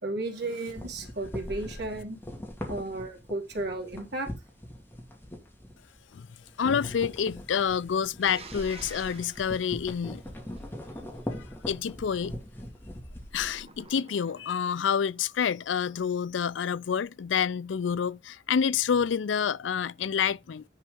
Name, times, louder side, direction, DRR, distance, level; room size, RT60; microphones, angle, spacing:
voice 1, 0.0-2.2 2.7-4.3, right 2 dB, 65° right, 3.1 m, -34 dB
sound 1, 0.7-6.1 6.4-13.9, equal, 10° left, 2.3 m, -41 dB
voice 2, 6.6-10.2 11.7-12.4 13.3-20.6, left 7 dB, 85° left, 0.4 m, -28 dB
sound 2, 8.2-10.9 13.3-14.8, right 4 dB, 35° right, 1.3 m, -49 dB
9.9 x 4.5 x 5.3 m
head